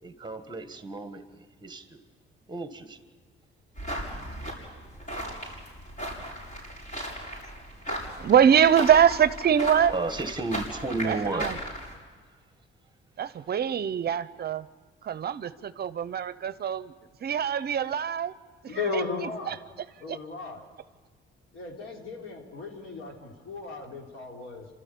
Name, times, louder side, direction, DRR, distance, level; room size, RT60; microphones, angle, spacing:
voice 1, 0.0-2.0 2.5-3.0 9.9-11.6 12.3-12.4, right 2 dB, 20° right, 8 dB, 1.6 m, -33 dB
sound 1, 3.8-11.9, equal, 40° left, 7.2 m, -36 dB
voice 2, 8.2-9.9 11.0-11.5 13.2-14.7 15.0-16.9 17.2-18.3 18.9-19.6 20.1-20.2, right 8 dB, 50° right, 14 dB, 0.7 m, -23 dB
voice 3, 18.7-19.6 20.0-20.6 21.5-24.7, left 4 dB, 70° left, 1 dB, 3.5 m, -35 dB
28.0 x 13.0 x 8.4 m, 1.4 s
cardioid pair, 105°, 21 cm